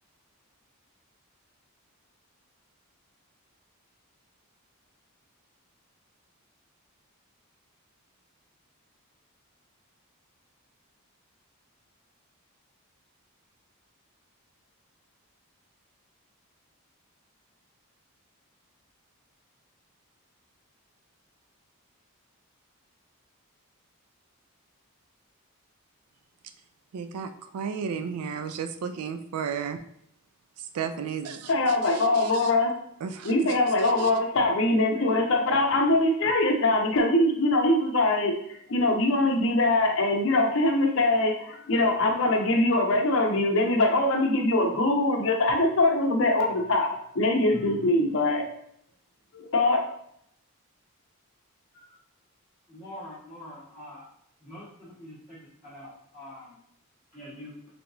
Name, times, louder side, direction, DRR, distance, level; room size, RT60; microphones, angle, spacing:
voice 1, 26.9-29.8 30.7-31.5 31.9-32.5 33.0-33.5 34.0-34.1, right 6 dB, 80° right, 9 dB, 0.3 m, -33 dB
voice 2, 31.5-32.7 33.2-38.3 38.7-48.4 49.3-49.8, left 2 dB, 60° left, 2 dB, 0.6 m, -23 dB
voice 3, 52.7-54.0 54.4-55.1 55.6-55.9 56.1-56.4 57.1-57.6, left 1 dB, 5° right, -12 dB, 1.0 m, -43 dB
3.3 x 2.9 x 2.6 m, 0.71 s
head